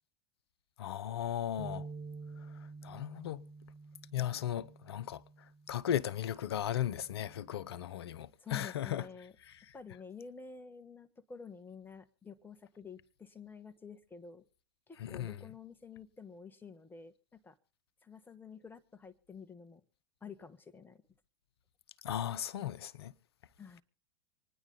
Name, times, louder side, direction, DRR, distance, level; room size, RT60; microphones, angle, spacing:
voice 1, 0.8-1.9 2.8-3.4 4.1-5.2 5.7-9.0 15.0-15.4 22.0-23.1, left 11 dB, 70° left, 0.7 m, -36 dB
sound 1, 1.6-7.8, right 4 dB, 40° right, 2.4 m, -50 dB
voice 2, 8.4-9.3 9.7-14.4 14.9-17.6 18.0-19.8 20.2-21.0 23.6-23.8, left 5 dB, 15° left, 1.2 m, -50 dB
26.0 x 10.0 x 3.7 m
hypercardioid pair, 90°, 14 cm